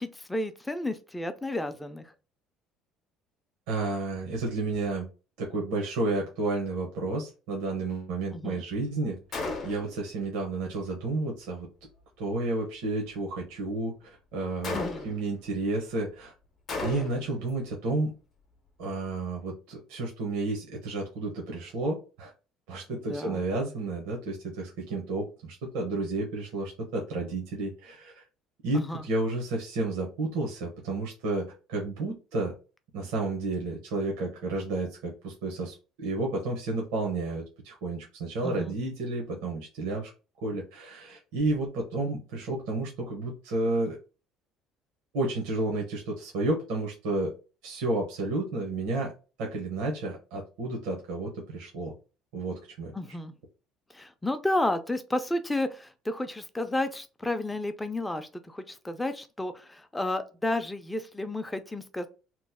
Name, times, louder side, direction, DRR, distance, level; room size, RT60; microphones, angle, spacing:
voice 1, 0.0-2.0 8.3-8.6 14.7-15.1 22.9-23.4 28.7-29.1 38.4-38.8 52.9-53.3 53.9-62.1, left 1 dB, 10° left, 0.4 m, -32 dB
voice 2, 3.7-5.1 5.4-11.7 12.2-16.3 16.8-18.1 18.8-22.3 22.7-28.2 28.6-32.5 32.9-40.1 40.4-44.0 45.1-47.3 47.6-49.1 49.4-51.9 52.3-52.9, right 2 dB, 90° right, 0.9 m, -31 dB
Gunshot gunfire, 9.3-10.0 14.6-15.3 16.7-17.4, left 3 dB, 40° left, 0.7 m, -34 dB
3.0 x 2.0 x 3.5 m
cardioid pair, 125°, 0 cm